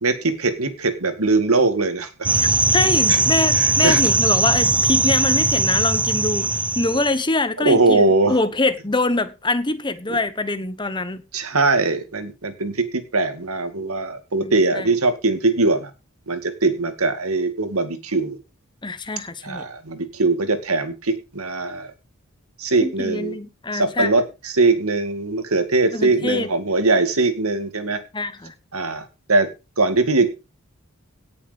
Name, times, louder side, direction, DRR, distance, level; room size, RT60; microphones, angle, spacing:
voice 1, 0.0-2.3 3.1-3.2 3.5-4.0 7.6-8.4 10.1-10.2 11.3-15.9 16.3-18.4 19.4-21.9 22.6-23.4 23.7-28.0 28.7-29.5 29.8-30.3, right 3 dB, 85° right, 9 dB, 2.2 m, -21 dB
sound 1, 2.2-7.2, right 2 dB, 5° right, 0.5 m, -19 dB
voice 2, 2.7-6.5 6.7-8.0 8.3-11.2 14.4-14.9 18.8-19.6 22.8-24.1 25.9-26.5 28.1-28.5, left 2 dB, 20° left, 13 dB, 1.1 m, -24 dB
17.5 x 6.9 x 5.3 m, 0.29 s
head